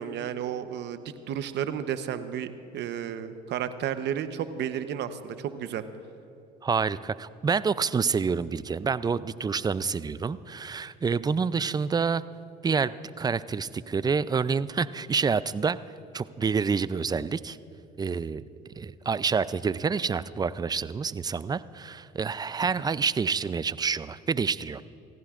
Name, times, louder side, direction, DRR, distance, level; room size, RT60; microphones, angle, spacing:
voice 1, 0.0-5.8, right 9 dB, 60° right, 11 dB, 0.9 m, -32 dB
voice 2, 6.6-12.2 12.6-15.8 16.1-17.6 18.0-18.4 18.8-24.8, right 5 dB, 20° right, 17 dB, 0.4 m, -28 dB
28.5 x 15.0 x 2.5 m, 2.7 s
supercardioid pair, 80°, 21 cm